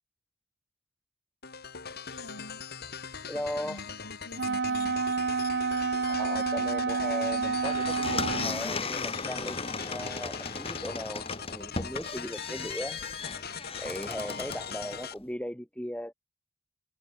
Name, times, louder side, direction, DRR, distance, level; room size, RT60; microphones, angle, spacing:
sound 1, 1.4-15.1, left 6 dB, 50° left, 4.5 m, -41 dB
voice 1, 2.1-2.7 3.5-5.0 14.3-14.7, left 1 dB, 70° left, 7.0 m, -47 dB
voice 2, 3.3-3.8 6.1-13.0 13.8-16.1, left 1 dB, 5° left, 4.6 m, -38 dB
Wind instrument woodwind instrument, 4.4-8.7, right 4 dB, 60° right, 0.9 m, -29 dB
sound 2, 7.5-15.1, left 4 dB, 30° left, 3.6 m, -36 dB
head